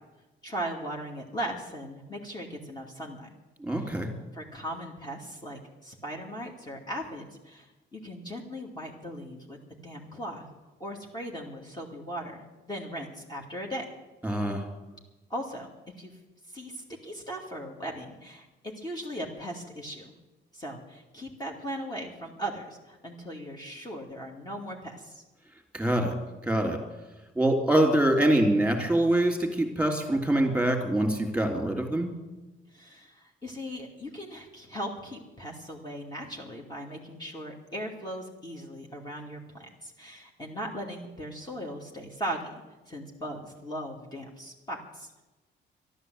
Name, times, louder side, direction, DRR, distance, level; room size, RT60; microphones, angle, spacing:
voice 1, 0.4-3.3 3.8-4.0 4.3-9.6 9.8-10.4 10.8-13.8 15.3-16.1 16.5-20.1 20.5-25.2 32.7-42.5 42.9-45.2, equal, 20° left, -1 dB, 2.4 m, -38 dB
voice 2, 3.6-4.1 14.2-14.6 25.7-26.1 26.4-26.8 27.4-32.1, right 1 dB, 5° right, 4 dB, 3.2 m, -24 dB
12.5 x 11.5 x 8.1 m, 1.1 s
cardioid pair, 90°, 20 cm